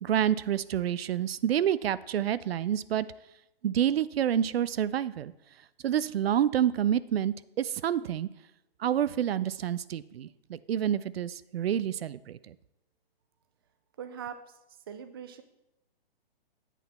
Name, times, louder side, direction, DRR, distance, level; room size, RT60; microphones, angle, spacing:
voice 1, 0.0-3.1 3.6-5.3 5.8-8.3 8.8-12.5, right 10 dB, 90° right, 17 dB, 0.5 m, -28 dB
voice 2, 14.0-14.4 14.9-15.4, right 8 dB, 25° right, 10 dB, 0.4 m, -40 dB
8.3 x 5.8 x 4.2 m, 0.88 s
hypercardioid pair, 155°, 29 cm